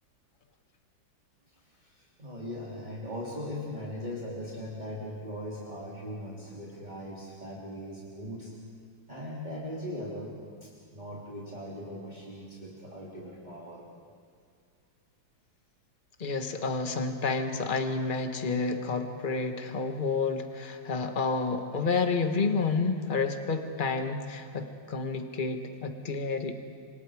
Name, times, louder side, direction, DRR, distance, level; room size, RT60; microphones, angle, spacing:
voice 1, 1.5-8.5 9.1-13.9, left 1 dB, 25° right, -6 dB, 2.9 m, -39 dB
voice 2, 16.2-26.5, left 4 dB, 30° left, 6 dB, 1.4 m, -30 dB
28.5 x 25.5 x 4.9 m, 2.1 s
omnidirectional pair, 2.0 m